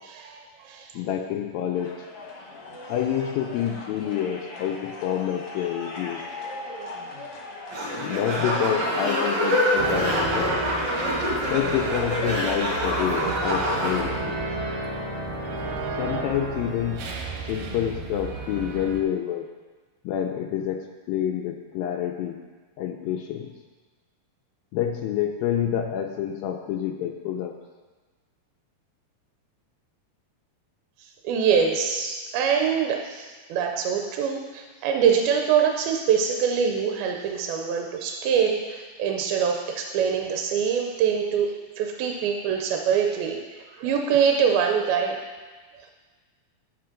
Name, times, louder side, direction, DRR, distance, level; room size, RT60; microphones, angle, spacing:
voice 1, 0.0-0.9 31.2-41.5 41.8-45.2, right 7 dB, 85° right, 2 dB, 2.6 m, -24 dB
voice 2, 1.0-2.0 2.9-6.2 8.0-10.6 11.5-14.4 16.0-17.1 17.5-19.5 20.0-22.4 22.8-23.5 24.7-27.6, left 10 dB, 80° left, 3 dB, 2.2 m, -28 dB
sound 1, 1.7-10.3, left 2 dB, 55° left, 1.7 m, -40 dB
sound 2, 7.7-14.0, equal, 35° right, 2.5 m, -26 dB
sound 3, 9.8-19.0, right 2 dB, 70° right, 2.4 m, -32 dB
10.5 x 7.8 x 3.8 m, 1.3 s
omnidirectional pair, 4.3 m